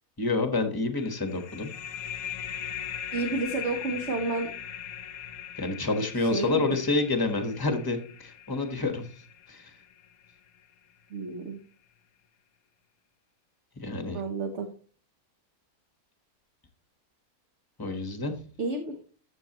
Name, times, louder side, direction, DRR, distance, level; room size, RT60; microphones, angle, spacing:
voice 1, 0.2-1.7 5.6-9.1 9.5-9.7 13.8-14.2 17.8-18.3, left 3 dB, 15° left, 6 dB, 1.2 m, -28 dB
sound 1, 1.0-10.3, left 9 dB, 70° left, 1.1 m, -40 dB
voice 2, 3.1-4.5 6.3-6.7 11.1-11.6 14.1-14.7 18.6-19.0, right 3 dB, 50° right, 5 dB, 1.3 m, -30 dB
14.0 x 6.7 x 3.0 m, 0.41 s
omnidirectional pair, 1.6 m